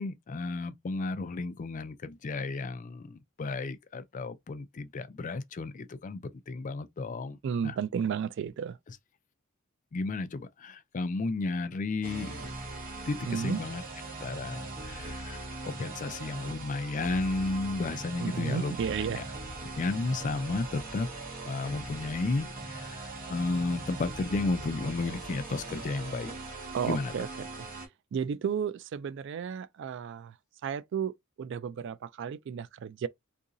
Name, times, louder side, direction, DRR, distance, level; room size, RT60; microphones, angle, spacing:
voice 1, 0.0-6.2 6.5-7.4 7.6-7.7 9.9-12.4 13.1-13.8 14.2-18.7 19.2-19.3 19.8-21.1 21.5-26.3 26.9-27.1, left 3 dB, 40° left, 0.4 m, -33 dB
voice 2, 7.4-8.8 13.3-13.6 18.2-19.2 26.7-27.3 27.6-27.7 28.1-30.4 30.6-33.1, right 7 dB, 60° right, 0.3 m, -33 dB
sound 1, 12.0-27.9, right 2 dB, 40° right, 1.2 m, -40 dB
2.8 x 2.6 x 3.7 m
head